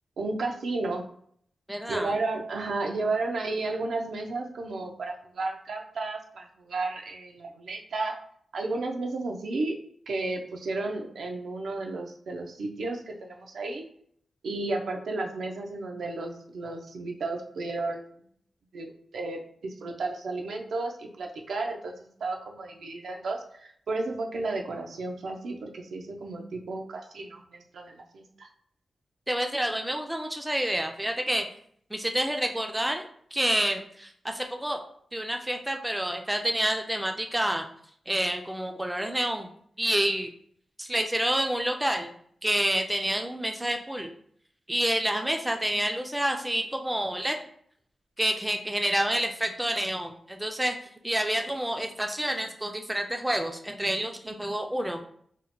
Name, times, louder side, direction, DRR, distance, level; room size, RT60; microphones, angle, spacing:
voice 1, 0.2-1.0 1.9-8.2 8.5-9.8 10.1-13.8 14.4-18.1 18.7-28.5, right 3 dB, 85° right, 2 dB, 0.5 m, -33 dB
voice 2, 1.7-2.1 29.3-31.5 31.9-34.8 35.1-37.6 38.1-39.5 39.8-40.3 40.8-42.1 42.4-44.1 44.7-47.4 48.2-50.8 51.0-55.0, right 1 dB, 10° right, 4 dB, 0.3 m, -28 dB
2.8 x 2.1 x 4.1 m, 0.64 s
wide cardioid pair, 120°, 0 cm